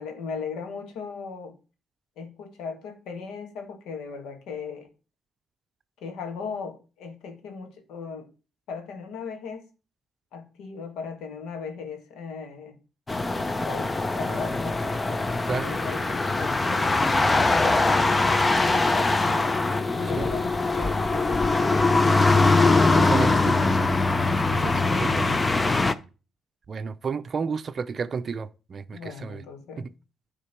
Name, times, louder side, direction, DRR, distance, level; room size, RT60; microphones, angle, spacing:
voice 1, 0.0-1.6 2.2-4.9 6.0-8.3 8.7-9.6 10.3-12.8 13.5-13.9 14.2-19.6 20.0-22.5 24.5-25.5 28.9-29.9, left 5 dB, 85° left, 1.8 m, -38 dB
sound 1, 13.1-25.9, left 3 dB, 20° left, 0.6 m, -22 dB
voice 2, 19.9-20.3 22.9-24.0 24.3-25.4 26.7-29.4 29.8-29.9, right 5 dB, 45° right, 0.5 m, -32 dB
9.9 x 3.8 x 5.9 m
cardioid pair, 90°, 0 cm